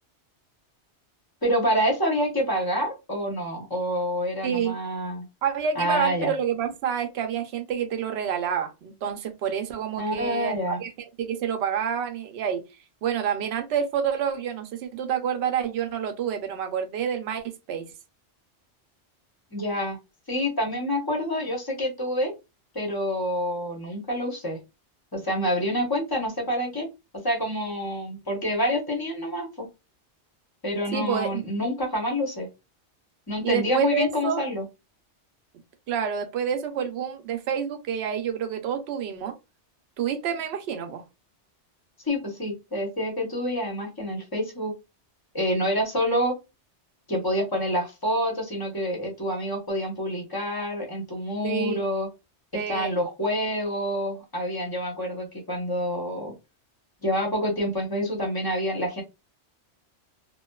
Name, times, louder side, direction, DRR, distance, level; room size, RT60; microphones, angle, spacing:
voice 1, 1.4-5.2 5.8-6.3 10.0-10.8 19.5-20.0 20.3-22.3 22.7-24.6 25.1-26.9 27.2-29.7 30.6-32.5 33.3-34.6 42.0-44.7 45.3-46.4 47.1-52.1 52.5-56.3 57.0-59.0, equal, 25° left, 0.7 m, -27 dB
voice 2, 4.4-4.7 5.4-10.9 11.2-12.6 13.0-17.9 30.9-31.4 33.4-34.4 35.9-39.3 40.0-41.0 51.4-51.8 52.5-52.9, right 8 dB, 70° right, 0.8 m, -28 dB
2.6 x 2.2 x 2.2 m
omnidirectional pair, 1.2 m